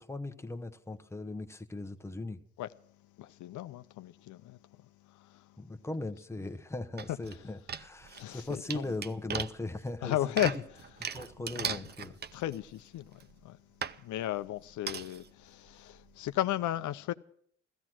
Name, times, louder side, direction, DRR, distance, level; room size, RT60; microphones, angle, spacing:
voice 1, 0.0-2.4 5.6-10.2 10.4-10.6 11.1-12.1, left 2 dB, 10° left, 0.9 m, -38 dB
voice 2, 3.2-4.6 5.1-5.5 8.1-8.8 10.0-10.5 11.1-13.6 14.0-17.1, left 13 dB, 75° left, 0.6 m, -35 dB
sound 1, 7.0-7.4 7.7-12.7 13.2-13.3 13.8-14.0 14.9-15.3 15.7-15.8 16.0-16.1, right 7 dB, 35° right, 0.5 m, -38 dB
15.0 x 14.5 x 6.1 m
cardioid pair, 90°, 30 cm